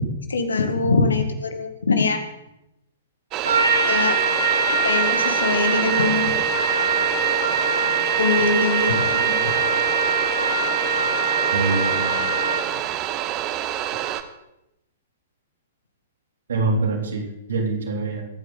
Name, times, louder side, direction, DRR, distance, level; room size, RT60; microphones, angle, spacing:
voice 1, 0.3-2.2 3.9-4.2 4.7-6.4 8.2-9.5, left 4 dB, 70° left, 7 dB, 1.8 m, -23 dB
sound 1, 3.3-14.2, right 12 dB, 30° right, 1.0 m, -27 dB
Trumpet, 3.4-12.8, right 4 dB, 80° right, 2.3 m, -22 dB
voice 2, 11.5-12.2 16.5-17.2 17.5-18.2, right 3 dB, 65° right, 0 dB, 3.4 m, -24 dB
21.5 x 9.5 x 4.0 m, 0.88 s
figure-of-eight pair, 110°, 0 cm